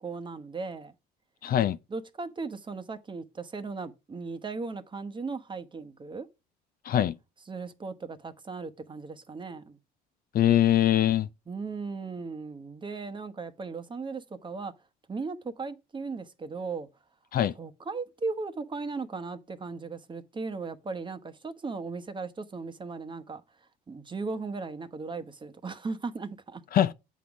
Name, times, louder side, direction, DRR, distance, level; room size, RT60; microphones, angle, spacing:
voice 1, 0.0-0.9 1.9-6.3 7.5-9.8 11.5-14.7 15.1-16.9 17.6-23.4 23.9-26.6, right 4 dB, 25° right, 1.0 m, -37 dB
voice 2, 1.4-1.8 6.9-7.2 10.3-11.3 17.3-17.5 26.7-26.9, left 11 dB, 50° left, 0.5 m, -22 dB
8.3 x 3.9 x 6.0 m
supercardioid pair, 85°, 19 cm